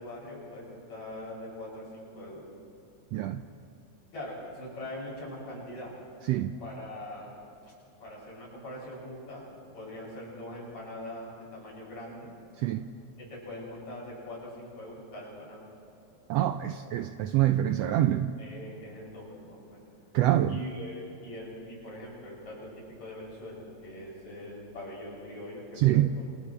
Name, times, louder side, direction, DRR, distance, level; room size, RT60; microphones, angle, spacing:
voice 1, 0.0-2.5 4.1-5.9 6.6-7.3 7.6-7.7 8.0-12.3 13.2-15.7 16.6-16.8 18.4-19.9 20.5-26.3, left 1 dB, 65° left, -5 dB, 8.7 m, -42 dB
voice 2, 3.1-3.4 6.3-6.5 12.6-12.8 16.3-18.3 20.1-20.6 25.8-26.1, right 13 dB, 80° right, 8 dB, 1.5 m, -25 dB
28.5 x 28.5 x 3.3 m, 2.7 s
omnidirectional pair, 3.4 m